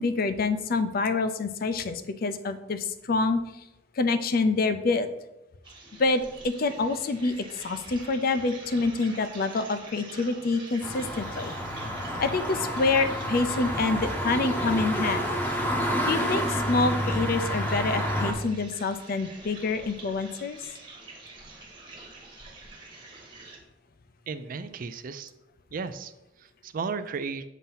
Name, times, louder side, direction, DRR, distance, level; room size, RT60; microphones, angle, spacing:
voice 1, 0.0-3.4 4.0-5.1 6.0-7.4 7.6-11.5 12.2-15.3 16.1-20.6, left 3 dB, 55° left, 10 dB, 0.5 m, -27 dB
sound 1, 5.6-23.6, right 3 dB, 25° right, 1.3 m, -47 dB
sound 2, 10.8-18.3, equal, 10° left, 0.8 m, -29 dB
voice 2, 24.3-25.3 25.7-26.1 26.4-27.4, right 5 dB, 50° right, 12 dB, 0.4 m, -34 dB
7.2 x 2.8 x 5.5 m, 0.91 s
head